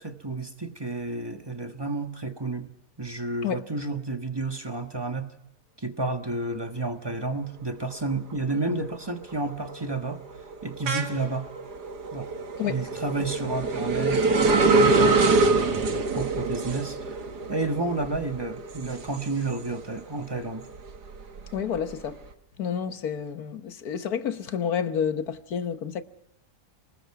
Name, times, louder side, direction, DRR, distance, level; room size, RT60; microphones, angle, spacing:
voice 1, 0.0-2.7 3.0-5.3 5.8-10.2 10.6-11.5 12.1-12.3 12.6-17.2 17.5-20.6, right 3 dB, 15° right, 1.4 m, -31 dB
sound 1, 7.9-8.4 8.7-20.0 20.4-22.1, right 3 dB, 90° right, 2.1 m, -25 dB
voice 2, 21.5-22.2 22.6-26.0, left 8 dB, 70° left, 1.6 m, -29 dB
29.5 x 20.0 x 4.8 m
omnidirectional pair, 1.7 m